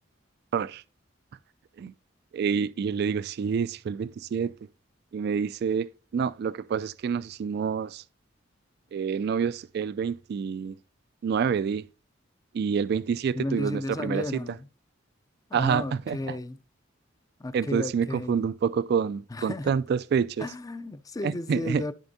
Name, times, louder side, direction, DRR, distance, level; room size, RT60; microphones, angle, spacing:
voice 1, 0.5-0.8 1.8-1.9 2.3-4.5 5.1-5.9 6.1-8.0 8.9-10.8 11.2-11.8 12.5-14.6 15.5-16.4 17.5-20.5 21.2-21.8, right 6 dB, 55° right, 0.3 m, -27 dB
voice 2, 13.3-14.7 15.5-16.6 17.4-18.4 19.3-19.7 20.4-21.9, left 2 dB, 20° left, 0.4 m, -33 dB
13.0 x 4.5 x 2.6 m
head